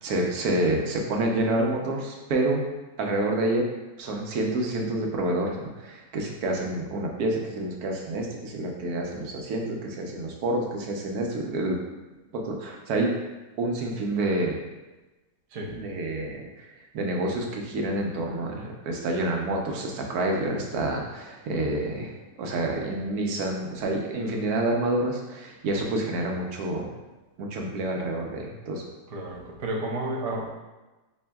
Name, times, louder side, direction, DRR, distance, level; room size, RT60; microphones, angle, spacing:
voice 1, 0.0-2.6 3.0-3.7 4.0-11.8 12.3-13.1 13.6-14.6 15.7-16.7 16.9-26.9 27.4-28.8, right 2 dB, 90° right, 0 dB, 1.2 m, -28 dB
voice 2, 29.1-30.5, right 1 dB, 70° right, -2 dB, 0.3 m, -31 dB
5.3 x 2.6 x 2.2 m, 1.1 s
omnidirectional pair, 1.5 m